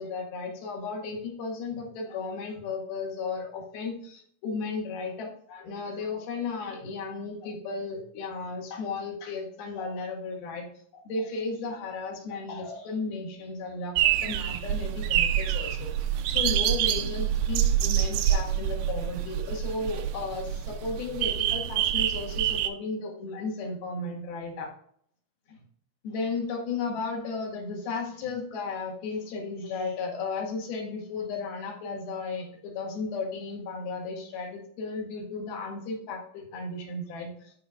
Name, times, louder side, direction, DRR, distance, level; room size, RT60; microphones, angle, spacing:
voice 1, 0.0-10.6 10.9-13.9 14.2-15.9 16.3-24.7 25.5-25.6 26.0-37.5, left 4 dB, 70° left, 0 dB, 3.7 m, -34 dB
sound 1, 14.0-22.7, right 10 dB, 90° right, 2.6 m, -26 dB
14.5 x 5.2 x 2.5 m, 0.63 s
omnidirectional pair, 4.5 m